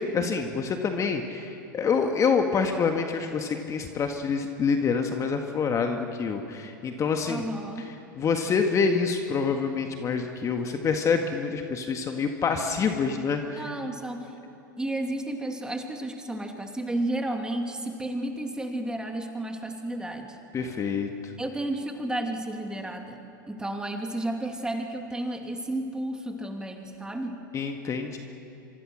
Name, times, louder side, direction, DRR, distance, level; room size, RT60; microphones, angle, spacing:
voice 1, 0.0-7.5 8.1-13.7 20.5-21.3 27.5-28.2, left 5 dB, 30° left, 5 dB, 1.8 m, -27 dB
voice 2, 7.3-7.9 13.6-14.3 14.8-20.4 21.4-23.2 23.5-27.4, right 1 dB, 5° right, 3 dB, 2.7 m, -32 dB
26.0 x 24.5 x 6.5 m, 2.9 s
hypercardioid pair, 100°, 11 cm